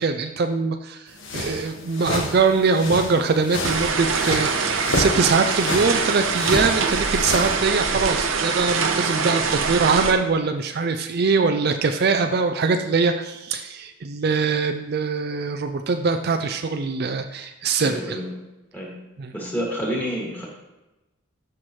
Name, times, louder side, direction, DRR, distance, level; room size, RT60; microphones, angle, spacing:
voice 1, 0.0-18.2 19.2-19.3, right 4 dB, 45° right, 6 dB, 0.4 m, -22 dB
sound 1, 1.2-7.6, left 1 dB, 60° left, 1.4 m, -30 dB
sound 2, 3.6-10.1, right 5 dB, 70° right, 0.9 m, -24 dB
voice 2, 17.8-18.3 18.7-18.9 19.3-20.5, equal, 10° left, -3 dB, 2.1 m, -28 dB
14.0 x 5.9 x 3.2 m, 1.0 s
head